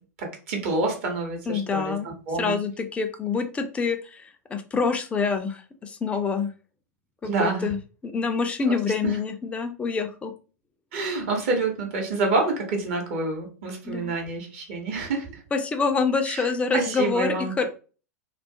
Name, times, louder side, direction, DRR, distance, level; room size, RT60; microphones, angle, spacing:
voice 1, 0.2-2.6 7.2-7.7 8.7-8.8 9.0-9.2 10.9-15.4 16.2-16.5 16.7-17.7, right 3 dB, 50° right, 2 dB, 0.9 m, -27 dB
voice 2, 1.5-2.1 2.4-6.5 7.2-7.8 8.0-10.3 13.9-14.1 15.5-17.7, left 5 dB, 15° left, 7 dB, 0.3 m, -26 dB
2.3 x 2.0 x 2.7 m, 0.36 s
figure-of-eight pair, 95°, 9 cm